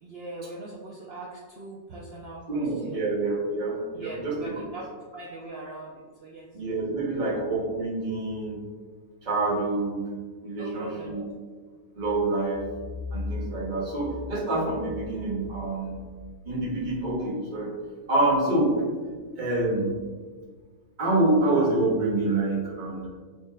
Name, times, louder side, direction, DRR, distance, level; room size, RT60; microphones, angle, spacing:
voice 1, 0.0-3.1 3.9-4.9 5.1-5.9 6.2-6.5 10.6-11.3, right 2 dB, 75° right, -4 dB, 0.5 m, -41 dB
voice 2, 2.5-4.5 6.5-8.6 9.2-10.0 10.4-11.2 11.9-12.6 13.1-16.0 16.4-17.7 18.1-18.8 19.4-19.9 21.0-23.1, right 2 dB, 40° right, -5 dB, 0.9 m, -26 dB
4.3 x 3.1 x 2.2 m, 1.5 s
omnidirectional pair, 1.6 m